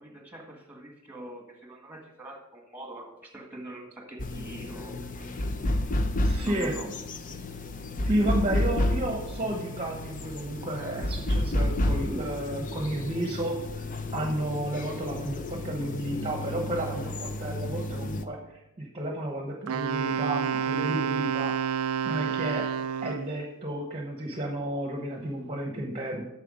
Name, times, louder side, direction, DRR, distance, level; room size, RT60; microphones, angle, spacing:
voice 1, 0.0-5.5 6.4-6.9 8.1-8.3, right 1 dB, 10° right, 2 dB, 1.5 m, -43 dB
sound 1, 4.2-18.2, left 1 dB, 35° left, 0.6 m, -31 dB
voice 2, 6.2-6.7 8.0-13.9 14.1-21.6 22.0-22.7 23.0-26.2, right 1 dB, 25° right, 1 dB, 0.9 m, -32 dB
Wind instrument woodwind instrument, 19.7-23.4, right 8 dB, 70° right, 0.3 m, -29 dB
9.1 x 6.7 x 5.1 m, 0.92 s
head